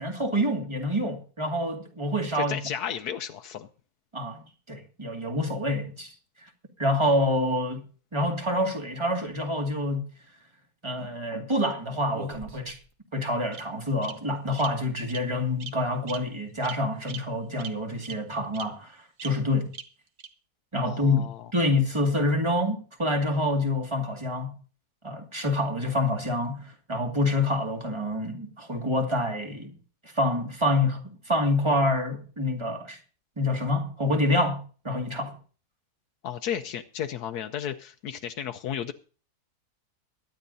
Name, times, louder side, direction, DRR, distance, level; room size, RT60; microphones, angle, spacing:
voice 1, 0.0-2.6 4.1-6.1 6.4-6.5 6.8-7.8 8.1-10.1 10.8-12.8 13.1-19.7 20.7-21.2 21.5-24.6 25.0-29.7 30.1-33.0 33.4-35.4, left 1 dB, 20° right, 2.1 m, -27 dB
voice 2, 2.3-3.7 20.8-21.5 36.2-38.9, left 9 dB, 85° left, 1.3 m, -33 dB
Bird vocalization bird call bird song, 12.1-12.9 13.5-13.6 14.0-14.1 14.6-14.7 15.1-15.2 15.6-15.7 16.1-16.2 16.6-16.8 17.1-17.2 17.6-17.7 18.0-18.1 18.5-18.6 19.2-19.3 19.7-19.8 20.2-20.3, right 6 dB, 60° right, 1.7 m, -39 dB
23.0 x 10.5 x 2.7 m
omnidirectional pair, 1.6 m